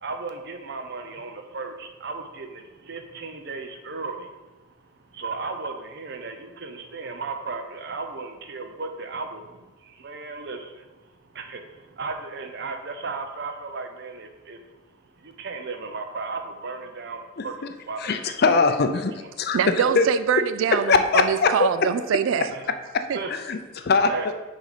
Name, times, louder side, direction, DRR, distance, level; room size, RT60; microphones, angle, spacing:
voice 1, 0.0-4.3 5.1-10.9 11.2-14.6 15.2-18.7 22.5-22.7 23.1-23.3 24.1-24.3, right 4 dB, 55° right, 6 dB, 0.7 m, -35 dB
voice 2, 18.0-19.6 20.0-20.1 20.9-21.7 22.9-23.0 23.3-24.3, left 4 dB, 50° left, 8 dB, 0.5 m, -21 dB
voice 3, 19.5-22.5 23.1-23.2, right 8 dB, 70° right, 13 dB, 0.3 m, -24 dB
6.3 x 4.0 x 4.9 m, 1.2 s
head